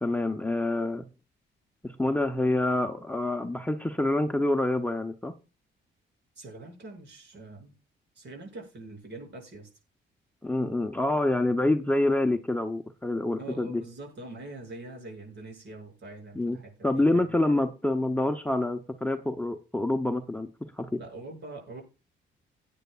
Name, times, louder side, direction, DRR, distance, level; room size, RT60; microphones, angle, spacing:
voice 1, 0.0-1.1 1.8-5.3 10.4-13.8 16.4-16.6 16.8-21.0, left 2 dB, 5° left, 6 dB, 0.8 m, -27 dB
voice 2, 6.4-7.8 8.2-9.7 13.4-17.4 21.0-21.8, right 2 dB, 60° right, 1 dB, 6.9 m, -44 dB
17.5 x 9.3 x 2.4 m, 0.32 s
cardioid pair, 90°, 20 cm